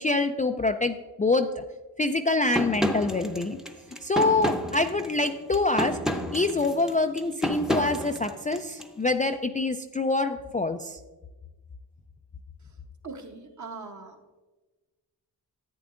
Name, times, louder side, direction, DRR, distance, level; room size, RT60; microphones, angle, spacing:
voice 1, 0.0-1.6 2.0-3.6 4.0-6.0 6.3-11.0, left 2 dB, 20° left, 6 dB, 0.3 m, -26 dB
sound 1, 2.5-8.9, equal, ahead, 0.7 m, -31 dB
voice 2, 13.0-14.2, right 4 dB, 45° right, 4 dB, 1.1 m, -40 dB
10.5 x 8.4 x 2.5 m, 1.2 s
cardioid pair, 60°, 42 cm